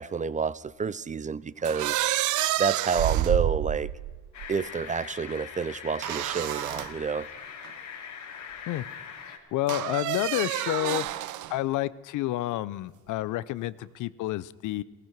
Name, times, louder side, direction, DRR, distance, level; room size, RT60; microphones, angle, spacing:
voice 1, 0.0-2.0 2.6-3.9 4.5-7.3, right 5 dB, 25° right, 0.4 m, -29 dB
sound 1, 1.6-4.5 6.0-6.9 7.6-7.7 9.7-11.6, right 14 dB, 75° right, 0.5 m, -29 dB
sound 2, 4.3-9.4, left 7 dB, 70° left, 1.9 m, -42 dB
voice 2, 9.5-14.8, left 15 dB, 85° left, 0.6 m, -30 dB
17.0 x 14.5 x 4.6 m
cardioid pair, 90°, 30 cm